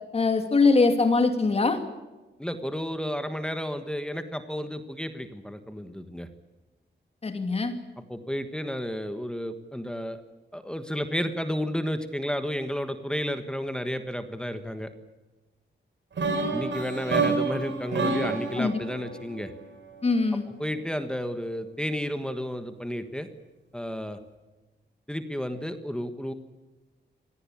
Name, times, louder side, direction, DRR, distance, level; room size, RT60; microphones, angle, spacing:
voice 1, 0.1-1.8 7.2-7.7 17.3-17.4 18.5-18.8 20.0-20.4, left 3 dB, 35° left, 7 dB, 2.6 m, -22 dB
voice 2, 2.4-6.3 8.1-10.2 10.5-14.9 16.5-19.5 20.6-23.3 23.7-24.2 25.1-26.3, equal, 5° left, 9 dB, 1.4 m, -32 dB
sound 1, 16.2-20.1, right 4 dB, 75° right, 5.4 m, -29 dB
25.5 x 18.0 x 8.5 m, 1.1 s
wide cardioid pair, 175°, 19 cm